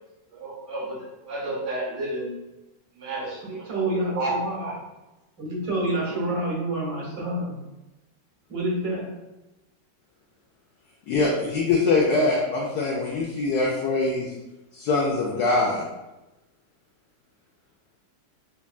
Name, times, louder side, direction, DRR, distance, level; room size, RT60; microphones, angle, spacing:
voice 1, 0.3-2.4 2.9-3.7 4.6-4.7, right 1 dB, 35° right, -7 dB, 1.4 m, -33 dB
voice 2, 3.5-4.7 5.4-7.5 8.5-9.1, right 1 dB, 75° right, -5 dB, 1.8 m, -27 dB
voice 3, 11.1-14.3 14.7-15.9, left 3 dB, 70° left, -3 dB, 1.0 m, -23 dB
5.2 x 2.3 x 2.3 m, 1.0 s
omnidirectional pair, 1.9 m